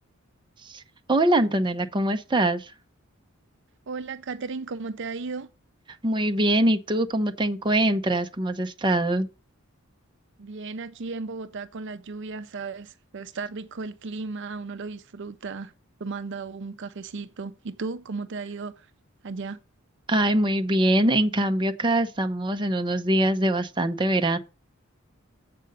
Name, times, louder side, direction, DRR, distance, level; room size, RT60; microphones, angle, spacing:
voice 1, 1.1-2.7 6.0-9.3 20.1-24.4, right 1 dB, 25° right, 0.7 m, -23 dB
voice 2, 3.9-5.5 10.4-15.7 16.0-18.9 19.2-19.6, right 4 dB, 60° right, 0.5 m, -35 dB
7.6 x 5.2 x 6.5 m
head